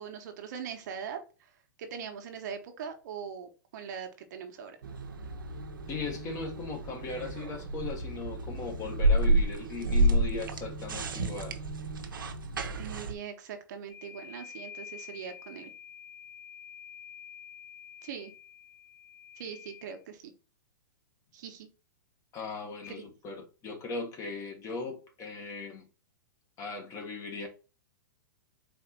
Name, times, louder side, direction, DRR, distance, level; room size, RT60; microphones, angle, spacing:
voice 1, 0.0-1.5 1.8-4.8 12.7-15.7 18.0-18.3 19.4-20.2 21.3-21.7 22.9-23.1, right 7 dB, 60° right, 1.0 m, -41 dB
sound 1, 4.8-13.1, right 1 dB, 85° right, 0.8 m, -30 dB
voice 2, 5.9-11.6 22.3-25.9 26.6-27.5, left 4 dB, 30° left, 1.5 m, -38 dB
sound 2, 13.9-20.0 22.8-23.0, left 8 dB, 50° left, 1.5 m, -48 dB
4.3 x 2.8 x 4.3 m
hypercardioid pair, 120°, 11 cm